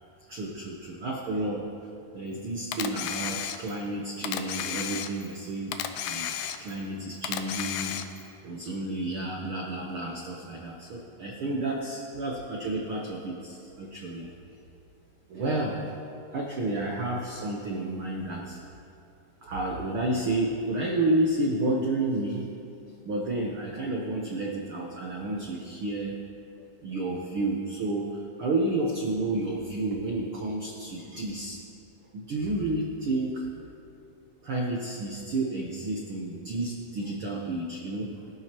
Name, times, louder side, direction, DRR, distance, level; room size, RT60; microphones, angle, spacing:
voice 1, 0.3-1.6 2.1-5.8 6.1-6.3 6.6-8.0 8.4-14.4 15.3-16.0 16.3-18.6 19.4-22.5 23.0-26.1 26.8-31.6 32.1-33.5 34.4-38.2, right 2 dB, 80° right, -1 dB, 1.2 m, -31 dB
Camera, 2.7-3.9 4.2-5.4 5.7-6.9 7.2-8.3, left 9 dB, 90° left, 2.4 m, -33 dB
21.5 x 12.5 x 3.0 m, 2.7 s
omnidirectional pair, 4.0 m